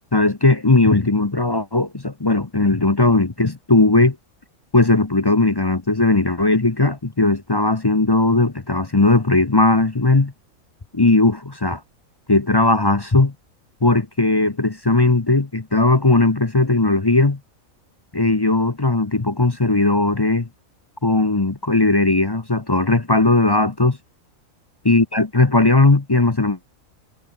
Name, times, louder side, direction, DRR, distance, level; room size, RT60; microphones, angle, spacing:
voice 1, 0.1-4.2 4.7-10.3 10.9-11.8 12.3-13.3 13.8-17.4 18.1-20.5 21.0-24.0 24.8-26.7, left 2 dB, 20° left, 0.7 m, -17 dB
omnidirectional pair, 1.4 m